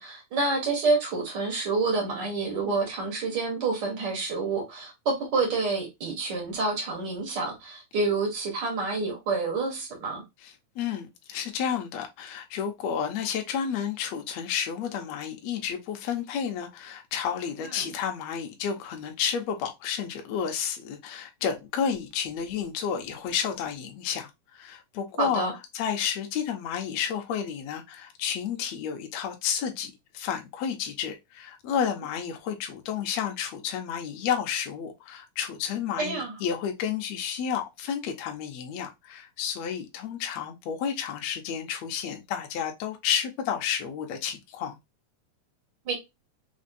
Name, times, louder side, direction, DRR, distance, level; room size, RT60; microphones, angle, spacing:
voice 1, 0.0-10.2 17.7-17.9 25.2-25.5 36.0-36.4 45.8-45.9, right 3 dB, 80° right, 0.9 m, -28 dB
voice 2, 10.4-25.5 25.7-44.8, left 8 dB, 75° left, 1.6 m, -31 dB
5.2 x 2.2 x 2.5 m
omnidirectional pair, 3.7 m